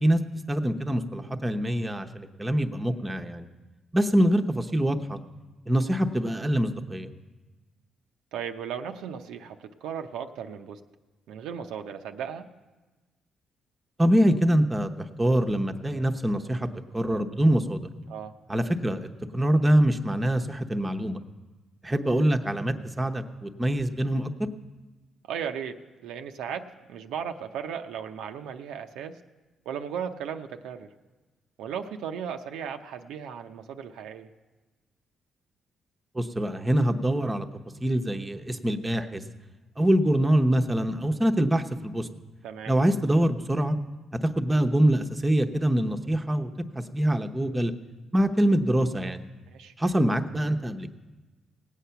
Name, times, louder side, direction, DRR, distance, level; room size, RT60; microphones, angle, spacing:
voice 1, 0.0-3.5 3.9-5.2 5.7-7.1 14.0-14.9 15.2-16.7 16.9-17.8 18.5-19.1 19.3-21.2 21.8-24.5 36.1-37.5 37.8-39.2 39.8-42.1 42.7-43.8 44.4-46.5 46.7-47.7 48.1-49.2 49.8-50.9, right 1 dB, 15° right, 5 dB, 0.8 m, -24 dB
voice 2, 8.3-10.8 11.3-12.5 18.1-18.3 25.2-29.2 29.7-30.9 31.6-34.3 42.4-42.7 49.5-49.7, right 8 dB, 90° right, 5 dB, 0.6 m, -36 dB
18.5 x 8.3 x 5.7 m, 1.2 s
cardioid pair, 90°, 0 cm